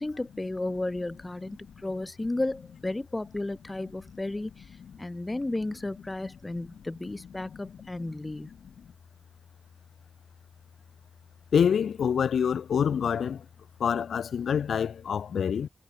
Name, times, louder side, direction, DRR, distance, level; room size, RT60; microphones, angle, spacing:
voice 1, 0.0-4.7 5.0-8.5, left 2 dB, 25° left, 5.9 m, -33 dB
voice 2, 11.5-13.4 13.8-15.7, left 7 dB, 85° left, 3.4 m, -26 dB
cardioid pair, 60°, 0 cm